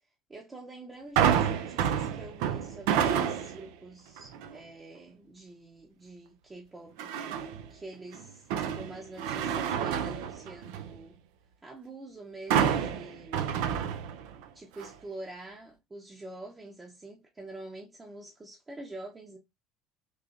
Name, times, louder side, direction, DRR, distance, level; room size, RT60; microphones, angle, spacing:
voice 1, 0.3-11.2 11.6-13.5 14.5-19.4, right 2 dB, 20° right, 0.8 m, -46 dB
sound 1, 1.2-3.7 4.2-4.5 7.0-7.7 8.1-11.0 12.5-14.4 14.8-14.9, right 8 dB, 60° right, 0.4 m, -29 dB
4.0 x 2.9 x 2.4 m
figure-of-eight pair, 60°, 0 cm